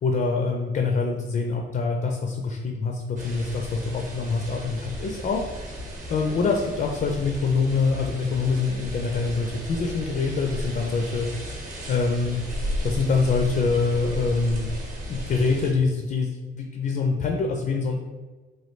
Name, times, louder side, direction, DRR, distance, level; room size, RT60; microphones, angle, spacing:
voice 1, 0.0-5.5 6.1-11.6 11.9-12.4 12.8-14.7 15.1-18.0, left 4 dB, 45° left, 2 dB, 0.4 m, -25 dB
sound 1, 3.2-15.7, equal, 40° right, 0.8 m, -35 dB
3.1 x 2.2 x 3.2 m, 1.3 s
cardioid pair, 90°, 20 cm